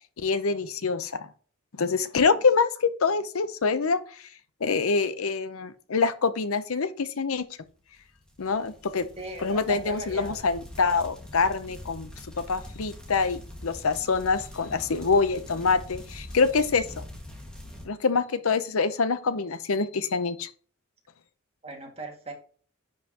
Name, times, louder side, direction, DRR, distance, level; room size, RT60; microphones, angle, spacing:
voice 1, 0.2-1.2 1.8-4.0 4.6-7.4 8.4-9.1 9.4-12.1 12.4-17.0 17.9-20.5, left 4 dB, 80° left, 0.7 m, -25 dB
sound 1, 8.0-17.9, left 1 dB, 5° left, 1.7 m, -43 dB
voice 2, 9.2-10.4 21.6-22.3, right 2 dB, 30° right, 2.0 m, -38 dB
10.5 x 5.4 x 2.9 m
head